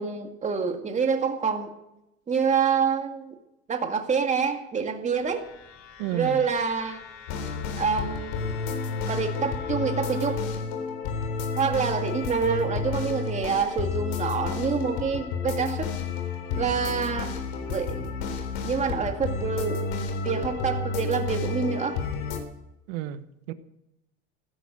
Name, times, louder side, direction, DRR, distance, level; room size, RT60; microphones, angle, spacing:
voice 1, 0.0-1.7 2.3-3.3 3.7-5.4 6.1-7.0 7.8-8.5 9.1-10.4 11.6-15.9 16.6-17.3 17.7-18.1 18.6-19.8 20.2-22.0, right 6 dB, 20° right, 4 dB, 2.2 m, -27 dB
sound 1, 5.1-10.4, left 7 dB, 50° left, 5.4 m, -47 dB
voice 2, 6.0-6.4 22.9-23.5, right 12 dB, 70° right, 12 dB, 1.3 m, -32 dB
sound 2, 7.3-22.4, left 4 dB, 70° left, 3.7 m, -31 dB
16.0 x 13.0 x 6.3 m, 0.87 s
supercardioid pair, 125°, 32 cm